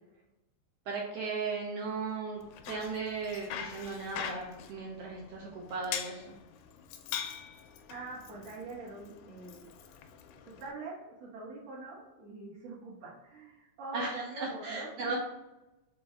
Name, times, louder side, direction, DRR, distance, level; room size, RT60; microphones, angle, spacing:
voice 1, 0.9-6.3 13.9-15.1, right 4 dB, 75° right, -2 dB, 1.4 m, -37 dB
Bicycle, 2.4-10.7, left 9 dB, 85° left, 2.1 m, -43 dB
voice 2, 7.9-9.7 10.4-15.2, right 3 dB, 60° right, -9 dB, 2.3 m, -44 dB
6.0 x 2.6 x 3.4 m, 1.0 s
omnidirectional pair, 3.6 m